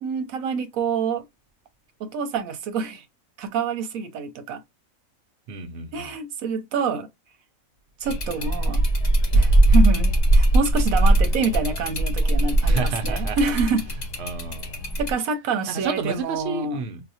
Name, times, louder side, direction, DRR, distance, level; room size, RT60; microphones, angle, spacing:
voice 1, 0.0-1.3 2.0-3.0 3.4-4.6 5.9-7.1 8.0-8.8 9.3-13.9 15.0-16.8, right 5 dB, 85° right, 1.1 m, -27 dB
voice 2, 5.5-6.1 12.7-13.4 14.2-14.8 15.7-17.0, right 4 dB, 55° right, 0.9 m, -30 dB
sound 1, 8.0-15.1, right 1 dB, 40° left, 0.7 m, -20 dB
4.0 x 2.1 x 2.7 m
omnidirectional pair, 1.4 m